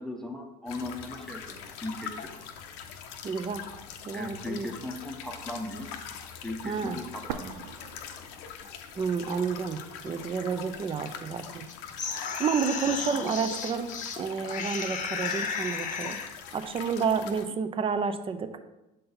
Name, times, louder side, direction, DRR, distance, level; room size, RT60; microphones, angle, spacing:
voice 1, 0.0-2.3 4.1-5.9 6.4-7.6 12.8-13.3, left 2 dB, ahead, 2 dB, 0.8 m, -38 dB
sound 1, 0.7-17.5, left 7 dB, 65° left, 0.7 m, -43 dB
voice 2, 3.2-3.6 4.0-4.7 6.6-7.0 8.9-11.6 12.4-13.9 14.2-16.2 16.5-18.6, right 6 dB, 25° right, 10 dB, 0.5 m, -30 dB
sound 2, 7.3-9.2 9.5-9.6 10.3-11.3, right 8 dB, 80° right, 0.4 m, -42 dB
sound 3, 11.7-14.2 14.5-16.3, left 5 dB, 35° left, 0.8 m, -34 dB
6.8 x 4.0 x 3.8 m, 0.97 s
hypercardioid pair, 85°, 21 cm